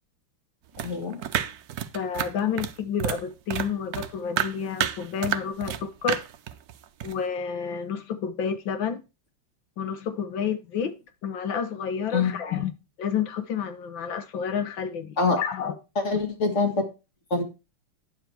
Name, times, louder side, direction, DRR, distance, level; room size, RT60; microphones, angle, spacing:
sound 1, 0.7-3.2 3.5-5.8 6.1-7.1, right 10 dB, 65° right, 0.9 m, -29 dB
voice 1, 0.8-1.2 12.1-12.3 15.2-15.4 16.0-16.8 17.3-17.4, left 4 dB, 35° left, 1.9 m, -24 dB
voice 2, 1.9-6.2 7.0-9.0 9.8-11.0 11.2-12.7 13.0-15.7, left 7 dB, 65° left, 1.7 m, -30 dB
10.0 x 7.2 x 4.5 m
omnidirectional pair, 2.4 m